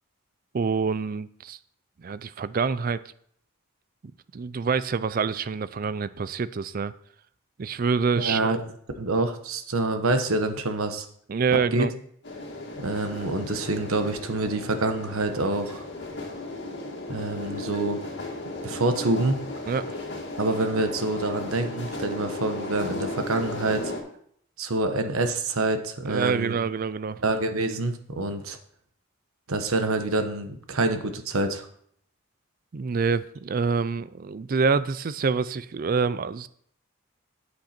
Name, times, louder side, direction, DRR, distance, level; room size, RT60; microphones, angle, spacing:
voice 1, 0.5-1.6 2.0-3.0 4.3-6.9 7.6-8.5 11.3-11.9 19.7-20.0 26.0-27.2 32.7-36.5, right 5 dB, 40° right, 16 dB, 0.4 m, -26 dB
voice 2, 8.2-8.6 9.0-11.0 11.7-11.9 12.8-15.8 17.1-18.0 18.6-19.4 20.4-23.9 24.6-26.5 27.2-28.6 29.5-31.7, right 2 dB, 80° right, 7 dB, 1.2 m, -26 dB
sound 1, 12.2-24.0, left 2 dB, 55° left, 2.1 m, -35 dB
8.6 x 8.0 x 4.4 m, 0.65 s
head